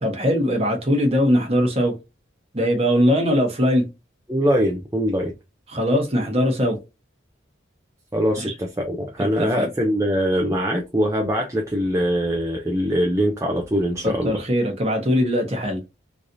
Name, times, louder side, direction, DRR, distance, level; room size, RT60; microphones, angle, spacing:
voice 1, 0.0-1.9 2.5-3.9 5.7-6.8 8.4-8.5 9.2-9.7 14.0-15.9, equal, 30° right, 1.0 m, -21 dB
voice 2, 4.3-5.3 8.1-14.4, equal, 15° right, 0.5 m, -22 dB
3.2 x 2.6 x 2.6 m
head